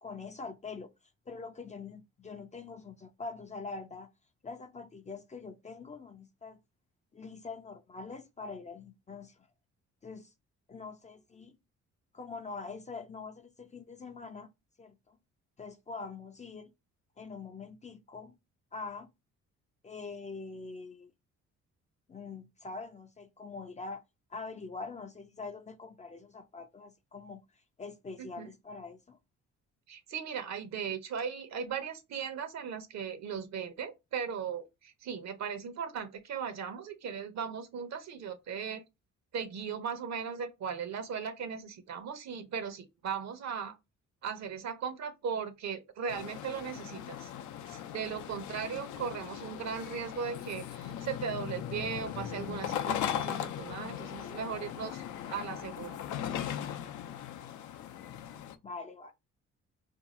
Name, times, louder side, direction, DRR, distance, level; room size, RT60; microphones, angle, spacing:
voice 1, 0.0-0.9 1.3-4.1 4.4-6.6 7.1-9.3 10.0-10.3 10.7-11.5 12.1-14.5 14.8-15.2 15.6-16.7 17.2-18.3 18.7-19.1 19.8-21.1 22.1-24.0 24.3-27.4 27.8-29.2 58.6-59.1, left 4 dB, 25° left, 0.4 m, -44 dB
voice 2, 28.2-28.5 29.9-38.8 39.3-43.8 44.2-47.3 47.7-56.0, right 7 dB, 60° right, 0.9 m, -38 dB
sound 1, 46.1-58.6, left 10 dB, 75° left, 0.5 m, -38 dB
2.7 x 2.3 x 4.0 m
cardioid pair, 90°, 30 cm